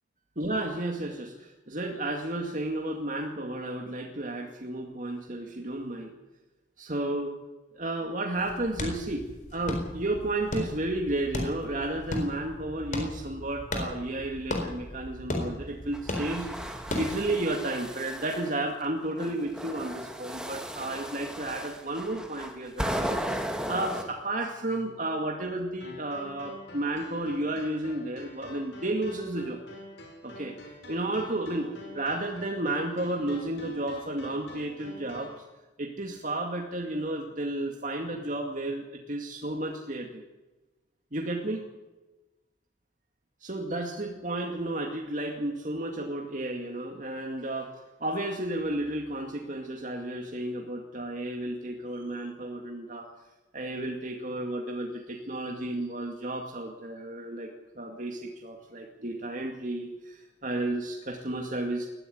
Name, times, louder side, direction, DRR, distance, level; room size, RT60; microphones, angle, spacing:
voice 1, 0.4-6.1 6.8-7.3 7.8-9.3 9.5-29.6 30.2-30.5 30.9-35.3 35.8-40.2 41.1-41.6 43.4-47.7 48.0-53.1 53.5-57.5 57.8-61.9, right 1 dB, 45° right, 1 dB, 2.3 m, -32 dB
sound 1, 8.4-17.4, left 1 dB, 45° left, 4.3 m, -36 dB
sound 2, 15.9-18.5 19.2-24.0, equal, 5° right, 2.1 m, -35 dB
sound 3, 25.8-35.4, left 1 dB, 75° left, 5.5 m, -47 dB
20.0 x 15.0 x 9.5 m, 1.1 s
head